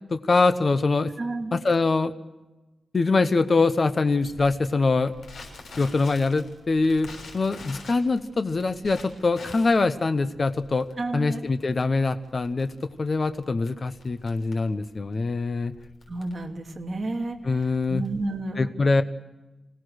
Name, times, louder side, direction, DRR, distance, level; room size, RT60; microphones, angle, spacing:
voice 1, 0.1-1.1 1.5-2.1 2.9-5.1 5.8-7.1 7.3-10.9 11.1-12.7 13.0-15.7 17.5-18.0 18.6-19.0, left 3 dB, 30° left, 10 dB, 0.8 m, -23 dB
voice 2, 1.2-1.6 11.0-11.4 16.1-18.7, right 2 dB, 30° right, 1 dB, 2.7 m, -31 dB
Crackle, 4.2-18.4, left 3 dB, 75° left, 6.7 m, -47 dB
26.0 x 17.5 x 6.5 m, 1.1 s
wide cardioid pair, 175°, 0 cm